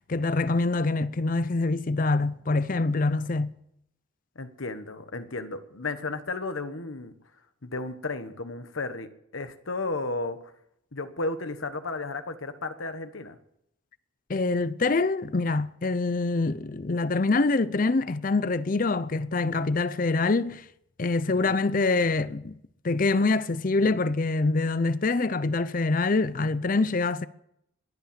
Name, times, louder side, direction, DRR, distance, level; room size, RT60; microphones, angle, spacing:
voice 1, 0.1-3.5 14.3-20.6 21.0-22.6 22.8-27.3, left 3 dB, 45° left, 0.6 m, -25 dB
voice 2, 4.3-7.1 7.6-10.4 10.9-13.4 21.4-21.6, left 3 dB, 80° left, 1.3 m, -33 dB
21.5 x 8.7 x 7.4 m
head